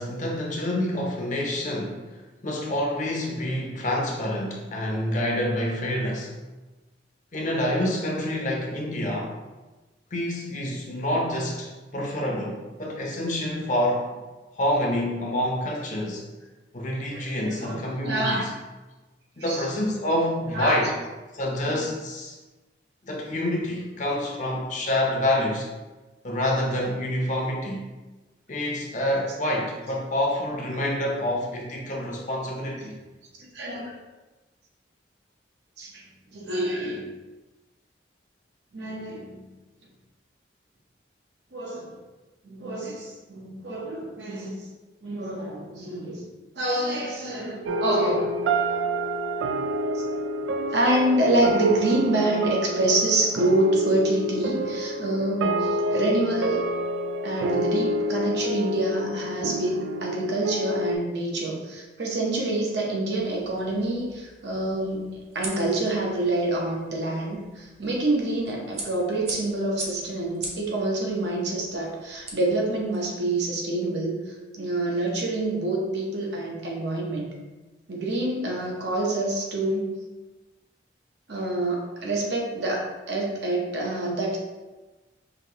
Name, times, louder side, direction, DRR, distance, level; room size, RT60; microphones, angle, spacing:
voice 1, 0.0-6.3 7.3-9.4 10.1-14.1 14.5-16.3 16.7-18.5 19.4-21.0 21.3-22.4 23.0-25.7 26.2-27.8 28.5-32.9, left 1 dB, 40° left, -1 dB, 0.7 m, -27 dB
voice 2, 17.1-18.4 19.5-19.6 20.5-20.8 33.4-33.9 35.8-36.0 36.3-37.1 38.7-39.4 41.5-41.9 42.4-44.7 45.0-46.3 46.6-48.3 49.9-50.0 50.7-56.7 57.2-77.3 77.9-79.9 81.3-84.4, right 2 dB, 70° right, -2 dB, 0.9 m, -27 dB
sound 1, 47.7-61.0, equal, 85° right, 0.3 m, -28 dB
sound 2, 63.2-73.1, right 2 dB, 35° right, 0.6 m, -42 dB
5.1 x 2.7 x 2.9 m, 1.2 s
head